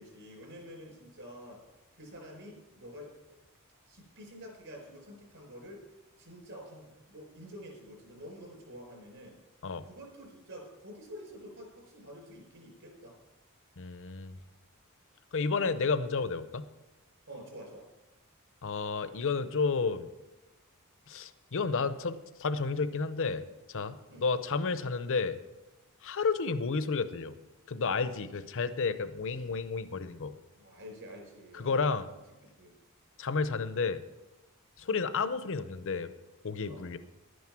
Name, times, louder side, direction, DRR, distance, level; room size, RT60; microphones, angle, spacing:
voice 1, 0.0-1.6 1.9-3.4 3.9-5.9 6.2-9.4 9.8-13.1 17.3-17.9 24.1-24.2 30.6-31.9 32.4-32.7 36.7-36.8, equal, 60° right, 1 dB, 5.1 m, -48 dB
voice 2, 13.8-14.4 15.3-16.7 18.6-20.1 21.1-25.4 26.0-27.4 27.7-30.4 31.5-32.1 33.2-34.0 34.8-36.1 36.4-37.0, left 4 dB, 65° left, 12 dB, 0.7 m, -31 dB
11.5 x 9.4 x 6.0 m, 1.0 s
head